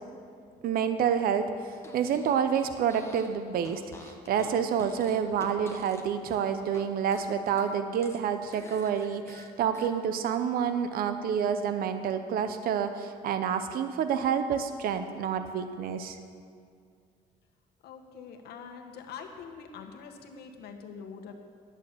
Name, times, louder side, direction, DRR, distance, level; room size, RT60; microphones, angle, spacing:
voice 1, 0.6-1.5 1.9-16.2, right 7 dB, 60° right, 9 dB, 0.7 m, -28 dB
Fart, 1.8-3.3 3.6-6.9 7.1-9.9, left 2 dB, 15° left, 1.3 m, -49 dB
voice 2, 17.8-21.3, left 6 dB, 70° left, 3 dB, 1.4 m, -44 dB
11.0 x 8.8 x 6.8 m, 2.3 s
cardioid pair, 110°, 17 cm